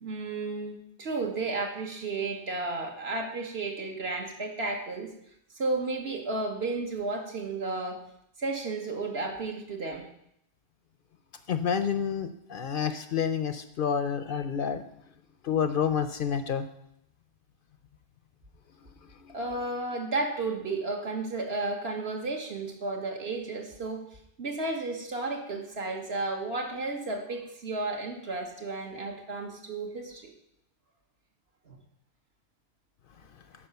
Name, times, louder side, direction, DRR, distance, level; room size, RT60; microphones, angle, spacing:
voice 1, 0.0-5.1 5.5-8.0 8.4-10.0 19.3-24.0 24.4-30.3 31.6-31.8, right 3 dB, 65° right, 2 dB, 1.6 m, -33 dB
voice 2, 11.5-14.8 15.4-16.7 19.3-19.4, left 7 dB, 60° left, 10 dB, 0.7 m, -29 dB
10.0 x 5.0 x 6.8 m, 0.76 s
omnidirectional pair, 1.2 m